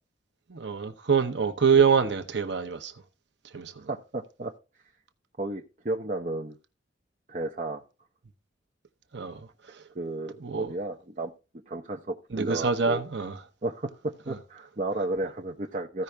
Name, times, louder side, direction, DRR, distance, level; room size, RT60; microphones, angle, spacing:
voice 1, 0.5-2.9 3.5-3.9 9.1-9.8 10.4-10.7 12.3-13.4 14.3-14.4, right 6 dB, 70° right, 0.9 m, -25 dB
voice 2, 3.9-4.5 5.4-6.6 7.3-7.8 9.9-11.3 11.7-13.0 13.6-16.0, right 2 dB, 40° right, 0.8 m, -33 dB
15.0 x 5.5 x 3.4 m
head